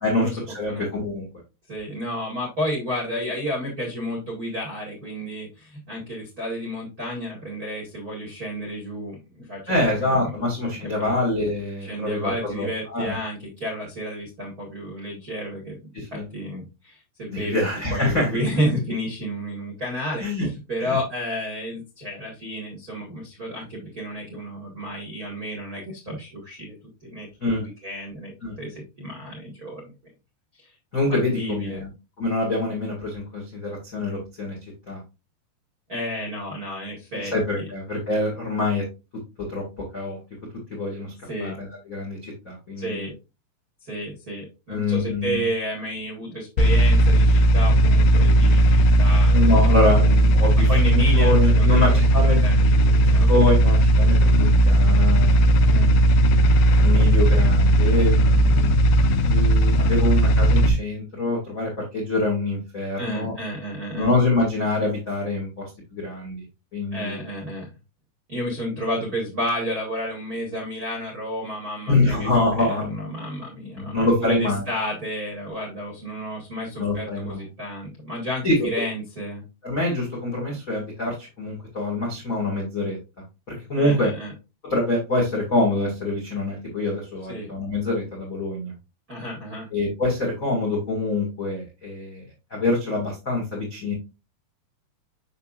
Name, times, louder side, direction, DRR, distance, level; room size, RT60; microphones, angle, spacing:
voice 1, 0.0-1.3 9.7-13.1 15.9-16.3 17.3-18.4 20.2-20.5 20.8-21.0 27.4-27.7 28.4-28.5 30.9-31.9 32.2-34.6 34.9-35.0 37.3-38.8 39.5-39.6 39.9-40.2 40.7-41.1 41.4-43.1 44.7-45.4 49.3-52.4 52.9-55.4 56.6-58.9 59.2-63.3 64.0-66.4 66.7-67.2 71.9-73.1 73.7-74.7 76.8-77.5 78.4-78.7 79.6-83.0 83.5-84.1 84.6-88.7 89.7-92.2 92.5-93.9, left 2 dB, 35° left, -3 dB, 1.3 m, -25 dB
voice 2, 1.7-10.3 10.8-11.1 11.8-17.6 17.9-20.2 20.7-26.8 27.0-27.3 27.5-28.3 28.6-29.8 30.5-30.7 31.3-31.8 35.9-37.7 41.2-41.6 42.8-43.1 43.8-49.8 50.7-52.0 52.4-53.3 55.7-56.0 63.0-64.1 66.9-67.7 68.3-79.4 83.7-84.3 87.3-87.5 89.1-89.7, equal, 80° right, -2 dB, 0.8 m, -31 dB
sound 1, 46.6-60.7, right 1 dB, 90° left, 2.9 m, -16 dB
6.7 x 6.3 x 2.4 m, 0.27 s
omnidirectional pair, 4.8 m